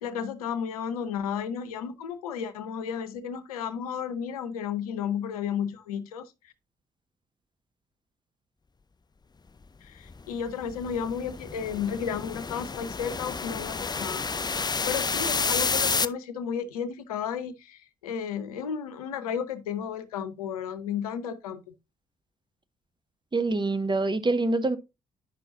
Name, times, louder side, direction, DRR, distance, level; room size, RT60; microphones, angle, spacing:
voice 1, 0.0-6.3 9.8-14.2 14.9-21.6, left 7 dB, 85° left, 0.7 m, -33 dB
sound 1, 10.1-16.1, left 4 dB, 25° left, 0.5 m, -30 dB
voice 2, 23.3-24.8, right 2 dB, 25° right, 1.1 m, -25 dB
9.6 x 6.0 x 2.6 m
hypercardioid pair, 40°, 18 cm